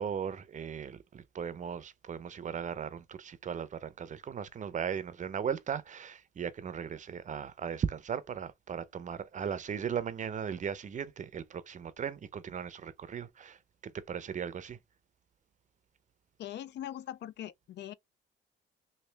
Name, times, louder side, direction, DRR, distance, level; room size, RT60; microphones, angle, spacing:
voice 1, 0.0-13.6 13.8-14.8, right 7 dB, 40° right, 0.5 m, -37 dB
voice 2, 16.4-17.9, left 11 dB, 60° left, 0.4 m, -41 dB
3.2 x 2.6 x 3.3 m
cardioid pair, 90°, 20 cm